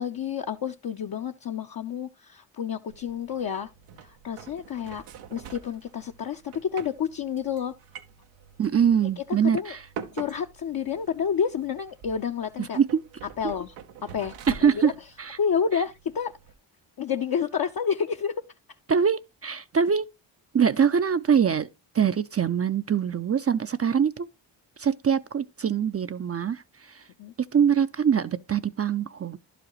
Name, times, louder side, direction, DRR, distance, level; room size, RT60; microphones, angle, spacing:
voice 1, 0.0-3.7 4.0-5.0 5.3-7.7 9.2-9.7 10.1-12.8 13.4-13.7 14.0-14.4 14.6-14.9 15.4-16.3 17.0-18.3 27.2-27.3, left 7 dB, 45° left, 0.7 m, -29 dB
sound 1, 2.9-16.5, right 7 dB, 90° right, 0.9 m, -46 dB
voice 2, 8.6-9.8 12.6-13.0 14.5-14.9 15.2-15.4 18.9-20.1 20.5-21.7 21.9-24.3 24.8-26.6 26.9-27.0 27.4-29.4, right 7 dB, 30° right, 0.5 m, -23 dB
11.5 x 5.0 x 3.0 m
supercardioid pair, 45°, 50 cm